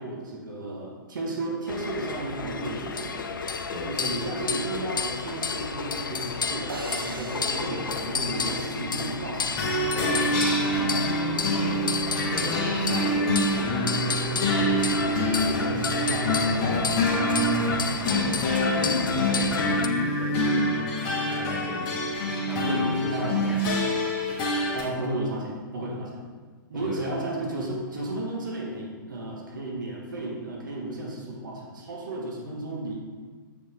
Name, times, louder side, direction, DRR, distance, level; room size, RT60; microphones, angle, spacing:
voice 1, 0.0-3.3 3.8-11.9 12.4-17.5 23.1-23.7 24.7-26.2 26.7-32.9, right 2 dB, 65° right, -2 dB, 1.3 m, -34 dB
sound 1, 1.7-19.9, left 5 dB, 70° left, 0.5 m, -31 dB
sound 2, 6.7-9.0, right 2 dB, 85° right, 0.6 m, -40 dB
sound 3, 9.6-24.8, equal, 35° left, 1.4 m, -26 dB
voice 2, 18.0-18.4 18.8-22.0 22.4-23.7 26.7-27.2, left 2 dB, ahead, -9 dB, 2.0 m, -34 dB
7.3 x 4.9 x 3.5 m, 1.5 s
figure-of-eight pair, 115°, 11 cm